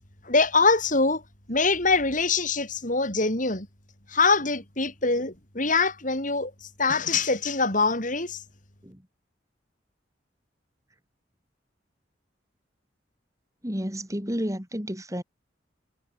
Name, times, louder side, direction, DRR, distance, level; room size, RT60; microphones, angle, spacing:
voice 1, 0.3-1.2 1.5-3.7 4.1-6.5 6.8-8.4, left 3 dB, 45° left, 6.0 m, -23 dB
voice 2, 13.6-15.2, equal, 15° right, 7.1 m, -31 dB
head